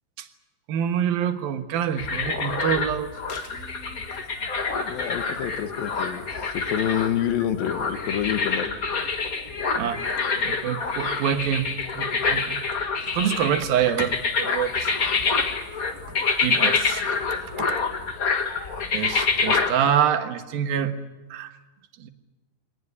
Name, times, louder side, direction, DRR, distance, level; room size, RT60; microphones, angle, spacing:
voice 1, 0.7-3.1 9.8-10.0 10.4-12.6 13.1-14.9 16.4-17.0 18.9-20.9 21.3-21.5 22.0-22.1, right 9 dB, 90° right, 8 dB, 3.2 m, -26 dB
sound 1, 2.0-19.7, left 4 dB, 40° left, 1.3 m, -26 dB
voice 2, 4.8-8.7, left 10 dB, 80° left, 9 dB, 3.1 m, -28 dB
23.0 x 18.5 x 9.7 m, 1.1 s
omnidirectional pair, 4.1 m